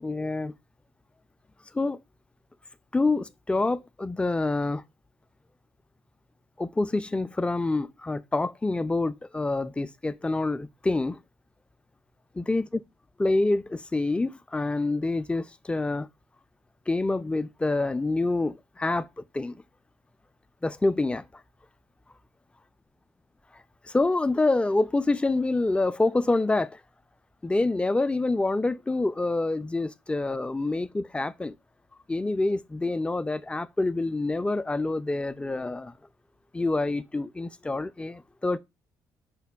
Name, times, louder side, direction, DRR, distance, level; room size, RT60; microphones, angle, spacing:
voice 1, 0.0-0.5 1.7-2.0 2.9-4.8 6.6-11.2 12.3-12.8 13.2-16.1 16.9-19.6 20.6-21.4 23.8-26.8 27.4-31.6 32.1-36.0 36.5-38.6, left 2 dB, 15° left, 0.3 m, -27 dB
5.7 x 2.1 x 2.2 m
hypercardioid pair, 55°, 8 cm